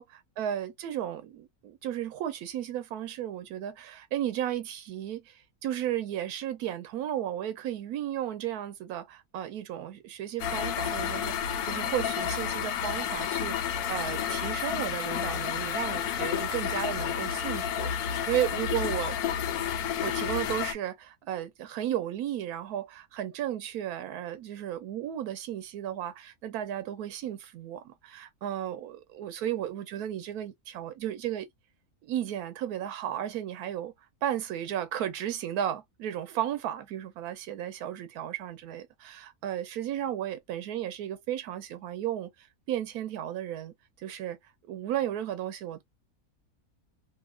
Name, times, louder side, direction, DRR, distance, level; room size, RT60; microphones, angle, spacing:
voice 1, 0.0-19.2 20.0-31.5 32.0-33.9 34.2-44.4 44.7-45.8, right 11 dB, 85° right, 1.1 m, -34 dB
sound 1, 10.4-20.7, left 8 dB, 85° left, 1.1 m, -31 dB
2.7 x 2.6 x 2.3 m
omnidirectional pair, 1.6 m